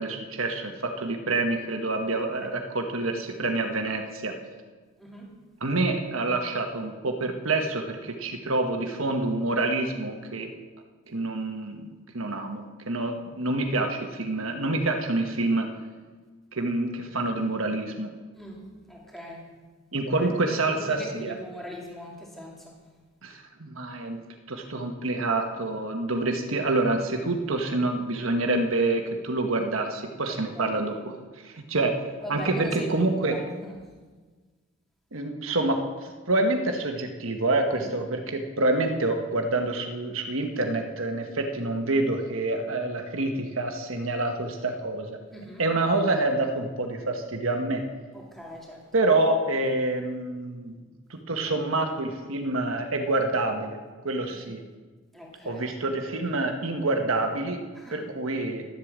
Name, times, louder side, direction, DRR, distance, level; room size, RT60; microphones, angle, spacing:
voice 1, 0.0-4.3 5.6-10.5 11.1-11.9 12.1-15.7 16.5-18.1 19.9-21.3 23.2-24.2 24.5-31.1 31.4-31.9 32.3-33.4 35.1-45.2 45.6-47.8 48.9-50.8 51.1-53.8 54.0-54.6 55.4-57.6 57.9-58.7, right 2 dB, 75° right, 4 dB, 1.4 m, -27 dB
voice 2, 5.0-5.4 18.3-19.5 20.2-22.7 30.6-30.7 32.2-33.8 37.7-37.9 45.3-45.6 48.1-49.0 54.2-54.4 55.1-55.7 57.8-58.1, equal, ahead, -3 dB, 2.6 m, -41 dB
12.0 x 8.4 x 7.4 m, 1.4 s
head